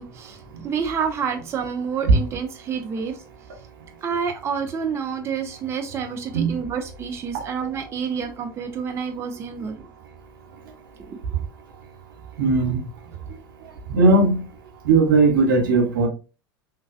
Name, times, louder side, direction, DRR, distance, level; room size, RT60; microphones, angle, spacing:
voice 1, 0.0-3.2 4.0-9.8 11.1-11.2, right 6 dB, 25° right, 5 dB, 0.4 m, -28 dB
voice 2, 12.4-12.8 13.9-14.4 14.8-16.1, right 3 dB, 70° right, 3 dB, 0.9 m, -17 dB
3.2 x 2.2 x 2.4 m, 0.33 s
hypercardioid pair, 85°, 12 cm